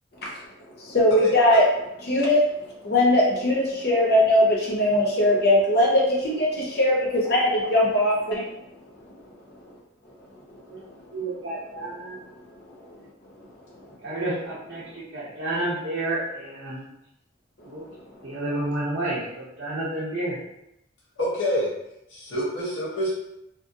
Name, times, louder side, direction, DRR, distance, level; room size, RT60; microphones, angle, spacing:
voice 1, 0.8-1.7 2.0-8.5 10.9-11.0 12.8-13.0, left 1 dB, 50° left, -3 dB, 0.7 m, -20 dB
voice 2, 11.1-12.2 14.0-16.9 17.6-17.8 18.2-20.4, right 2 dB, 60° right, -8 dB, 0.7 m, -30 dB
voice 3, 21.2-21.7 22.1-23.1, equal, 90° left, -6 dB, 0.8 m, -26 dB
2.7 x 2.4 x 2.6 m, 0.85 s
head